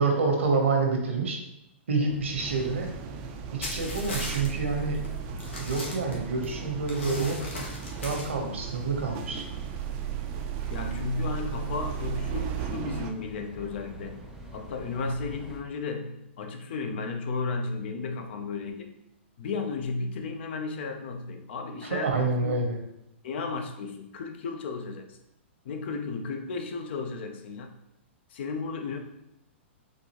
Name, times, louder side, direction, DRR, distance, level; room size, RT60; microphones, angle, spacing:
voice 1, 0.0-1.4 1.9-2.9 3.7-5.1 5.6-7.4 8.0-9.4 21.8-22.8, right 4 dB, 80° right, 2 dB, 0.9 m, -27 dB
sound 1, 2.1-15.6, equal, 5° right, 0.7 m, -45 dB
sound 2, 2.4-13.1, right 9 dB, 40° right, 0.4 m, -36 dB
sound 3, 3.6-4.5 4.9-5.1 5.4-6.5 6.9-8.3, left 2 dB, 80° left, 1.1 m, -37 dB
voice 2, 10.7-19.0 19.4-22.5 23.2-25.2 25.6-27.7 28.3-29.0, left 4 dB, 60° left, 6 dB, 0.5 m, -34 dB
4.1 x 2.5 x 2.9 m, 0.83 s
hypercardioid pair, 125°, 7 cm